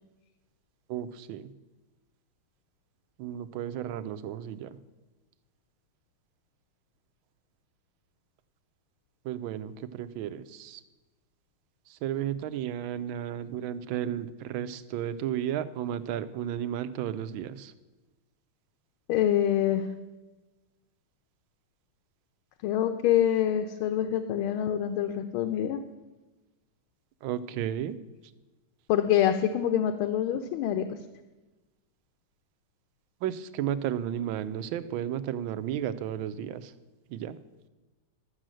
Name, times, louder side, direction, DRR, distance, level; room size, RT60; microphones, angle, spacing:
voice 1, 0.9-1.5 3.2-4.8 9.2-10.8 11.9-17.7 27.2-28.0 33.2-36.7 37.1-37.4, right 10 dB, 75° right, 13 dB, 1.3 m, -33 dB
voice 2, 19.1-19.8 22.6-25.8 28.9-30.8, left 10 dB, 80° left, 6 dB, 1.5 m, -25 dB
12.0 x 6.3 x 7.6 m, 1.2 s
omnidirectional pair, 2.4 m